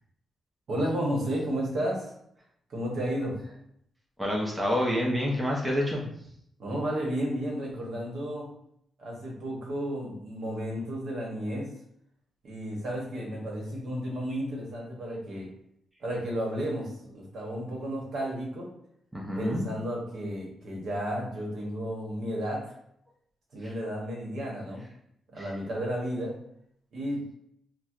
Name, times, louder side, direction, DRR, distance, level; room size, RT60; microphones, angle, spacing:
voice 1, 0.7-2.1 2.7-3.3 6.6-8.5 9.0-11.7 12.4-15.5 16.0-18.7 19.3-22.7 23.5-24.8 25.3-26.3 26.9-27.2, equal, 60° right, -2 dB, 1.0 m, -32 dB
voice 2, 4.2-6.1 19.1-19.7 25.4-25.5, equal, 10° right, -3 dB, 0.6 m, -28 dB
4.3 x 2.1 x 2.4 m, 0.71 s
wide cardioid pair, 140°, 0 cm